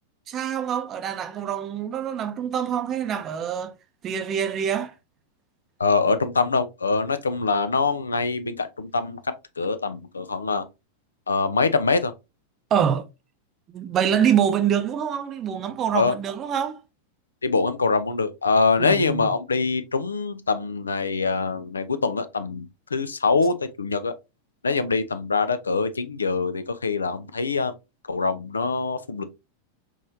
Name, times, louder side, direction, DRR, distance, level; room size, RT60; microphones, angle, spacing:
voice 1, 0.3-3.7 4.0-4.9 12.7-13.1 13.7-16.8 18.8-19.3, right 8 dB, 30° right, 0.6 m, -25 dB
voice 2, 5.8-9.2 9.6-10.7 11.3-12.1 15.9-16.1 17.4-24.1 24.6-27.7 28.1-29.2, left 4 dB, 75° left, 0.5 m, -24 dB
5.3 x 3.1 x 2.6 m
figure-of-eight pair, 90°, 0 cm